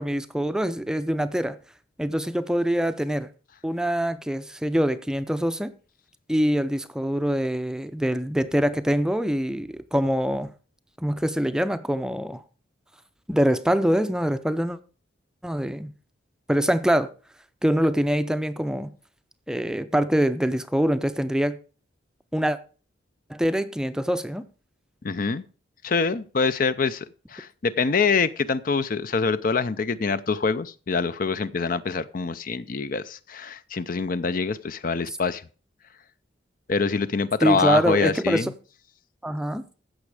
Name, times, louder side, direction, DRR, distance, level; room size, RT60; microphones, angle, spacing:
voice 1, 0.0-1.6 2.0-3.3 3.6-5.7 6.3-10.5 11.0-12.4 13.3-14.8 15.4-15.9 16.5-17.1 17.6-18.9 19.5-21.6 22.3-22.6 23.3-24.4 37.4-38.5 39.2-39.6, equal, 5° right, 0.5 m, -24 dB
voice 2, 25.0-25.4 25.8-35.4 36.7-38.5, left 4 dB, 45° left, 0.5 m, -25 dB
15.0 x 6.1 x 4.8 m
head